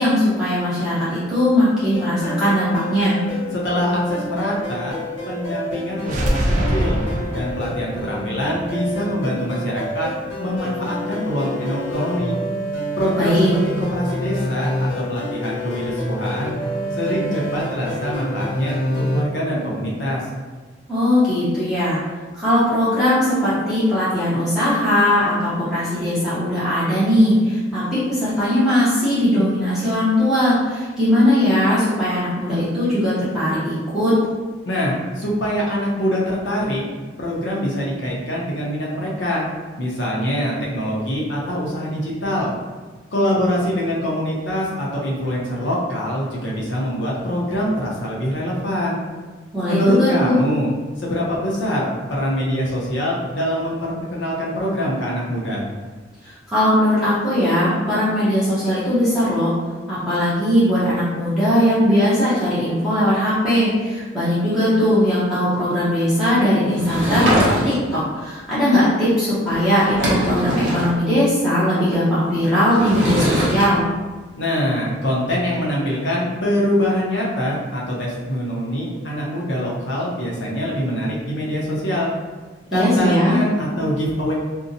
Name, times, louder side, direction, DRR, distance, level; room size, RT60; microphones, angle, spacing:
voice 1, 0.0-3.2 13.2-13.5 20.9-22.0 22.4-34.1 49.5-50.4 56.5-59.5 59.9-73.8 82.7-83.4, equal, 5° right, -13 dB, 0.7 m, -19 dB
sound 1, 1.9-19.2, equal, 85° left, 1.2 m, -28 dB
voice 2, 3.5-5.0 5.3-7.0 7.3-10.1 10.4-12.4 13.0-16.6 17.0-20.2 34.7-36.8 37.2-39.4 39.8-42.5 43.1-49.0 49.7-50.7 51.0-55.7 74.4-82.1 82.7-84.3, equal, 70° left, -4 dB, 0.7 m, -24 dB
sound 2, 6.0-9.8, equal, 40° right, 0.3 m, -24 dB
Sliding door / Wood, 66.7-68.0 69.5-69.6 69.8-70.9 72.7-73.7, equal, 75° right, 0.8 m, -22 dB
2.7 x 2.1 x 2.6 m, 1.4 s
head